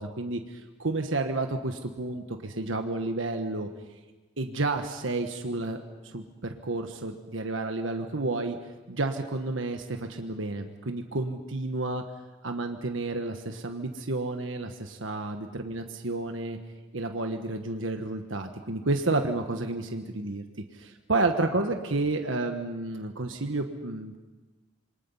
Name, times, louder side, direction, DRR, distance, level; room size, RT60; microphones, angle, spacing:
voice 1, 0.0-3.7 4.4-8.6 8.9-12.0 12.4-16.6 16.9-20.4 20.7-24.2, right 2 dB, 80° right, 5 dB, 1.4 m, -31 dB
27.0 x 23.5 x 5.6 m, 1.2 s
head